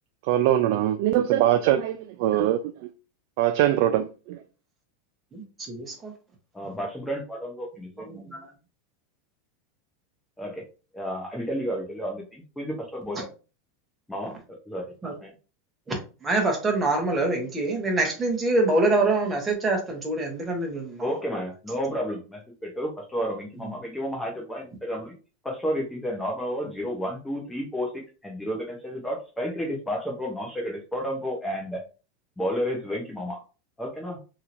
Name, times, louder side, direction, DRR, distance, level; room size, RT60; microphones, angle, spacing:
voice 1, 0.2-2.9 3.4-4.4, right 12 dB, 60° right, 0.3 m, -22 dB
voice 2, 5.3-5.9 8.0-8.5 15.0-15.1 15.9-16.0 16.2-21.1, right 2 dB, 15° right, 1.1 m, -25 dB
voice 3, 6.5-8.3 10.4-10.6 10.9-13.3 14.1-14.4 14.7-14.8 15.2-15.3 21.0-25.1 25.4-31.8 32.4-33.4 33.8-34.2, equal, 5° left, 0.8 m, -31 dB
2.9 x 2.7 x 2.6 m
supercardioid pair, 130°, 0 cm